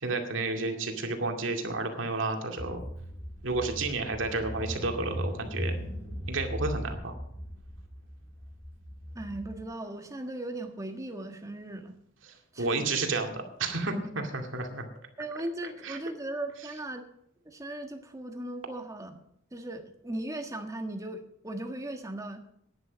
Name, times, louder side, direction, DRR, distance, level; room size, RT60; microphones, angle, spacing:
voice 1, 0.0-2.8 3.4-5.8 6.3-7.1 12.2-14.9 15.8-16.0, right 3 dB, 75° right, 4 dB, 2.3 m, -31 dB
Car / Engine, 2.6-9.6, equal, 15° left, 3.6 m, -38 dB
voice 2, 9.1-11.9 12.5-12.8 14.1-14.2 15.2-17.1 17.4-19.2 19.5-22.4, right 1 dB, 15° right, 5 dB, 1.5 m, -38 dB
11.0 x 10.5 x 6.3 m, 0.71 s
head